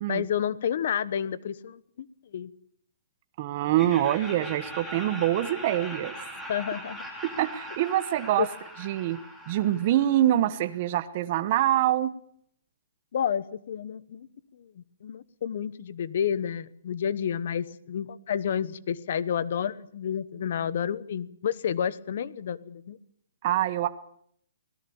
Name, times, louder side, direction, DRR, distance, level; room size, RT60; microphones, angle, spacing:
voice 1, 0.1-2.1 2.3-2.5 6.5-7.0 8.4-8.5 13.1-14.3 14.6-23.0, left 8 dB, 45° left, 18 dB, 1.1 m, -30 dB
voice 2, 3.4-6.1 7.2-8.5 8.8-9.2 9.5-12.1 23.4-23.9, right 13 dB, 30° right, 11 dB, 1.1 m, -25 dB
Laughter, 3.7-10.7, equal, 5° left, 3.7 m, -41 dB
25.0 x 18.5 x 7.2 m, 0.64 s
hypercardioid pair, 175°, 0 cm